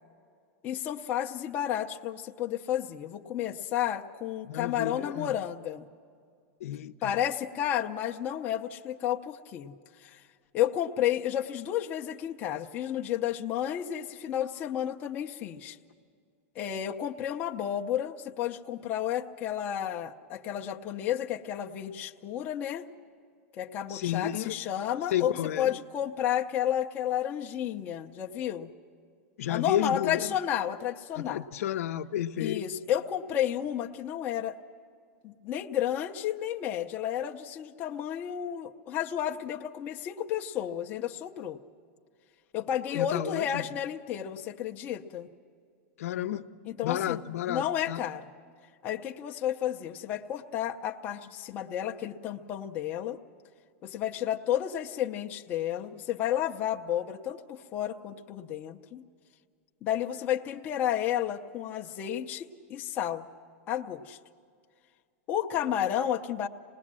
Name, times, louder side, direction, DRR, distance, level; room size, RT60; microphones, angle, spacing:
voice 1, 0.6-5.9 7.0-9.7 10.0-10.2 10.5-15.8 16.6-22.8 23.6-28.7 29.5-31.4 32.4-34.6 35.2-41.6 42.5-45.3 46.7-47.2 47.5-48.2 48.8-53.2 53.8-59.0 59.8-63.3 63.7-64.2 65.3-66.5, left 10 dB, 20° left, 2 dB, 0.6 m, -31 dB
voice 2, 4.5-5.3 6.6-7.1 23.9-24.6 25.1-25.8 29.4-30.3 31.1-32.7 42.9-43.7 46.0-46.5 46.8-48.1, left 11 dB, 75° left, 11 dB, 0.8 m, -32 dB
26.5 x 19.5 x 7.5 m, 2.2 s
supercardioid pair, 175°, 8 cm